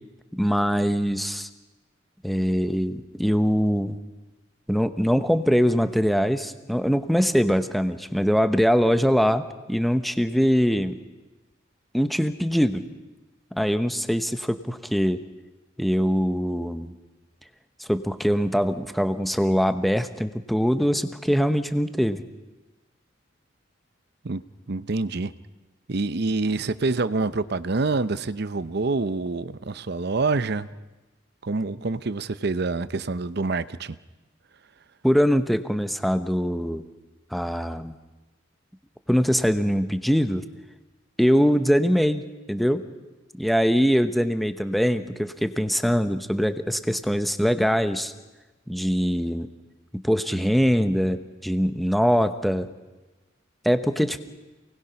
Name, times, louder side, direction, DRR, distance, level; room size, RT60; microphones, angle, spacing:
voice 1, 0.3-1.5 2.2-4.0 4.7-11.0 11.9-12.8 13.5-15.2 15.8-16.9 17.8-22.2 35.0-36.8 37.3-37.9 39.1-40.4 41.2-42.8 43.3-48.1 48.7-49.5 49.9-52.7 53.6-54.2, equal, ahead, 9 dB, 0.9 m, -23 dB
voice 2, 24.7-25.3 25.9-30.7 31.4-34.0, right 3 dB, 55° right, 14 dB, 0.7 m, -26 dB
28.5 x 20.0 x 5.9 m, 1.1 s
head